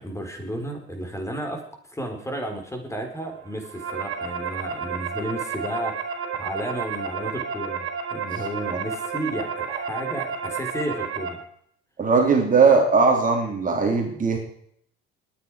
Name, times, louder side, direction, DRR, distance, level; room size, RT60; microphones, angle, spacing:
voice 1, 0.0-1.6 1.9-7.9 8.1-11.4, right 1 dB, 10° left, 4 dB, 4.2 m, -32 dB
sound 1, 3.5-11.3, right 6 dB, 45° right, 4.4 m, -31 dB
voice 2, 12.0-14.4, right 4 dB, 25° right, 2 dB, 3.2 m, -19 dB
20.5 x 9.8 x 4.9 m, 0.66 s
hypercardioid pair, 85°, 30 cm